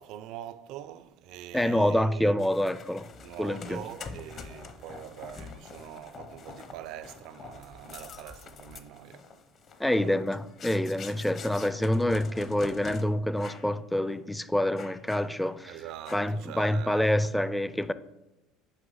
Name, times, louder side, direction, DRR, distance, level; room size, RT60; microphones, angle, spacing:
voice 1, 0.0-2.3 3.2-9.3 9.9-10.3 11.6-11.7 15.6-17.1, right 11 dB, 65° right, 0.4 m, -44 dB
voice 2, 1.5-3.1 3.4-3.8 9.8-15.8 16.1-17.9, left 1 dB, 5° left, 0.3 m, -27 dB
sound 1, 2.4-13.0 13.4-13.7 14.1-14.2 14.8-15.6 16.1-16.5, left 5 dB, 45° left, 0.7 m, -46 dB
6.5 x 4.8 x 5.5 m
supercardioid pair, 105°, 0 cm